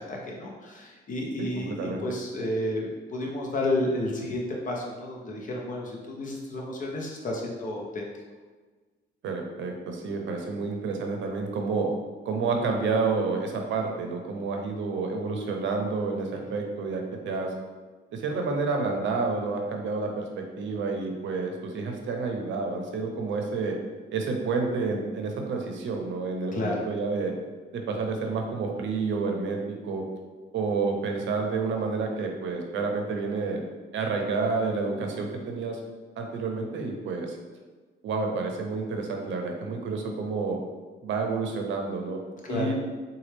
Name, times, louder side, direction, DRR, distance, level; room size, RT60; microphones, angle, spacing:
voice 1, 0.0-8.1 26.5-26.9 42.4-42.8, left 1 dB, 40° left, -2 dB, 0.8 m, -31 dB
voice 2, 1.4-2.0 9.2-11.9 12.2-17.5 18.1-23.8 24.1-27.3 27.7-30.0 30.5-33.6 33.9-35.8 36.2-37.4 38.0-40.6 41.0-42.2 42.5-42.8, right 4 dB, 70° right, 2 dB, 0.6 m, -29 dB
4.0 x 2.3 x 3.3 m, 1.3 s
cardioid pair, 90°, 20 cm